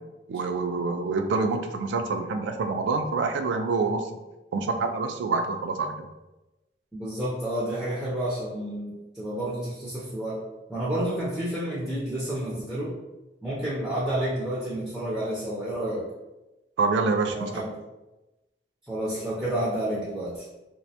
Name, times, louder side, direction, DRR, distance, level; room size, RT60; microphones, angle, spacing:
voice 1, 0.3-4.1 4.5-6.1 16.8-17.5, right 4 dB, 85° right, 6 dB, 0.3 m, -26 dB
voice 2, 6.9-10.4 10.7-12.9 13.4-16.1 17.3-17.8 18.8-20.4, right 1 dB, 5° right, -8 dB, 0.4 m, -30 dB
2.4 x 2.1 x 2.7 m, 1.0 s
head